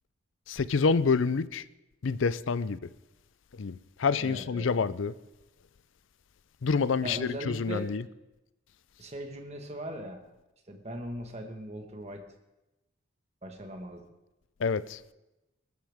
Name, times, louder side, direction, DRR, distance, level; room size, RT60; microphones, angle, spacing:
voice 1, 0.5-1.6 2.0-2.8 3.6-5.1 6.6-8.0 14.6-15.0, left 5 dB, 70° left, 0.5 m, -27 dB
voice 2, 4.2-4.7 7.0-7.9 9.0-10.2 10.7-12.3 13.4-14.0, right 1 dB, 30° right, 1.5 m, -39 dB
20.5 x 13.5 x 3.6 m
head